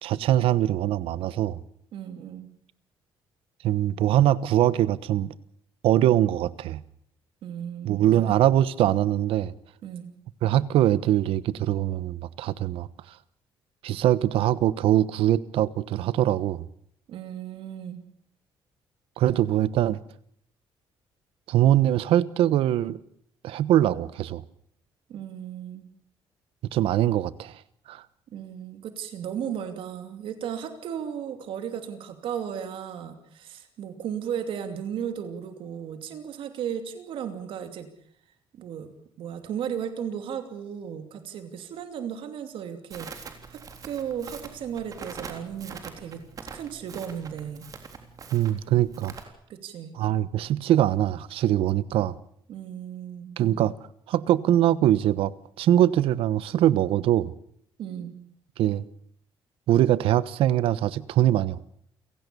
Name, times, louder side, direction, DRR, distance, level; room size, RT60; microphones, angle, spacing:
voice 1, 0.0-1.6 3.6-5.3 5.8-6.8 7.8-9.5 10.4-12.9 13.8-16.6 19.2-20.0 21.5-23.0 23.4-24.4 26.7-27.5 27.9-28.0 48.3-49.1 50.0-52.2 53.4-53.7 54.1-55.3 55.6-57.3 58.6-58.8 59.7-61.6, right 12 dB, 85° right, 1.2 m, -22 dB
voice 2, 1.9-2.5 7.4-8.4 9.8-10.1 17.1-18.0 25.1-25.9 28.3-37.9 38.5-38.9 39.2-46.2 46.5-47.7 49.5-49.9 52.5-53.4 57.8-58.2, right 8 dB, 70° right, 2.8 m, -35 dB
Crackle, 42.9-49.2, right 5 dB, 40° right, 3.6 m, -43 dB
29.5 x 17.5 x 7.0 m
cardioid pair, 150°, 9 cm